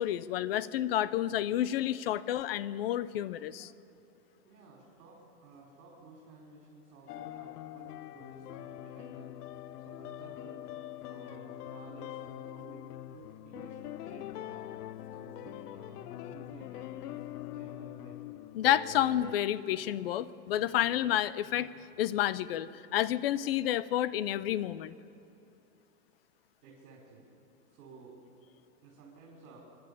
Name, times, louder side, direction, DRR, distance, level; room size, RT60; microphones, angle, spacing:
voice 1, 0.0-3.7 18.5-21.7 22.0-25.0, left 12 dB, 40° left, 17 dB, 0.5 m, -30 dB
voice 2, 4.4-9.3 9.8-10.6 11.0-12.8 13.1-14.7 15.1-18.3 26.6-27.3 27.7-28.2 28.8-29.6, right 3 dB, 65° right, -4 dB, 5.3 m, -54 dB
sound 1, 7.1-19.3, left 13 dB, 80° left, 0.7 m, -43 dB
26.5 x 12.0 x 8.6 m, 2.8 s
supercardioid pair, 160°, 46 cm